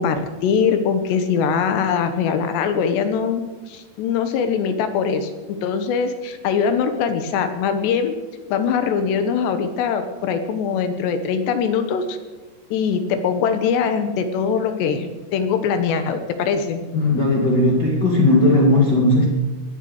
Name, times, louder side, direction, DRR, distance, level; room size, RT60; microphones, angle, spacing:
voice 1, 0.0-3.4 3.7-5.3 5.6-8.1 8.5-12.2 12.7-16.8, left 6 dB, 75° left, 8 dB, 3.2 m, -22 dB
voice 2, 16.9-19.3, left 1 dB, 45° left, -2 dB, 1.5 m, -16 dB
20.0 x 8.2 x 8.1 m, 1.2 s
omnidirectional pair, 5.1 m